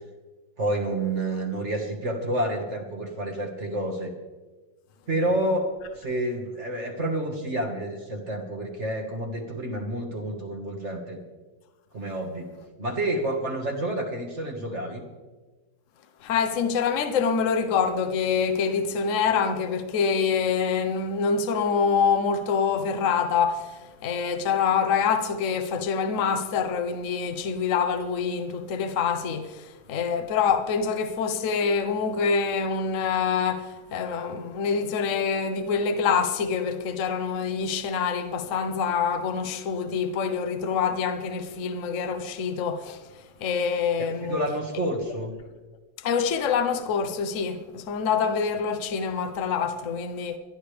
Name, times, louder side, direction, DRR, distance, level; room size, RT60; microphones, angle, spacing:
voice 1, 0.6-4.1 5.1-11.2 11.9-12.5 12.8-15.0 44.0-45.3, right 1 dB, 35° right, 1.8 m, -29 dB
voice 2, 16.2-43.0 43.4-44.4 46.0-50.4, left 6 dB, 50° left, 1.1 m, -26 dB
26.0 x 11.0 x 3.4 m
omnidirectional pair, 2.2 m